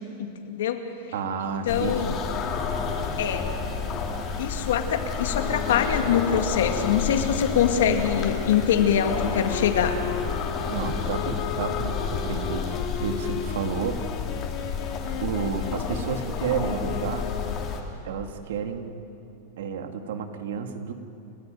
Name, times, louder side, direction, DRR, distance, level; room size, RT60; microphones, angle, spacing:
voice 1, 0.2-0.8 1.7-2.1 3.2-3.5 4.4-10.0, left 8 dB, 85° left, 5 dB, 2.3 m, -24 dB
voice 2, 1.1-2.2 10.7-14.0 15.2-17.3 18.0-19.0 19.6-20.9, right 6 dB, 80° right, 6 dB, 2.1 m, -31 dB
sound 1, 1.7-17.8, left 5 dB, 30° left, 2.9 m, -30 dB
Wind instrument woodwind instrument, 5.4-17.8, left 8 dB, 50° left, 1.9 m, -36 dB
29.5 x 14.5 x 9.2 m, 2.8 s
supercardioid pair, 155°, 0 cm